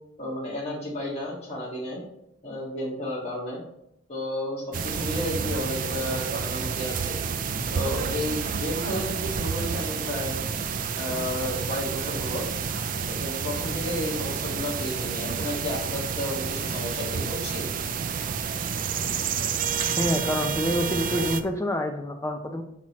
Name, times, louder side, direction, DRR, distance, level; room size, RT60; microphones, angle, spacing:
voice 1, 0.2-2.0 2.4-3.6 4.1-7.2 7.7-10.5 10.9-12.4 12.9-17.6, left 1 dB, 30° left, -7 dB, 1.5 m, -32 dB
sound 1, 4.7-21.4, right 6 dB, 40° right, 0.3 m, -29 dB
voice 2, 20.0-22.6, equal, 15° left, 5 dB, 0.5 m, -27 dB
6.0 x 5.8 x 3.0 m, 0.77 s
head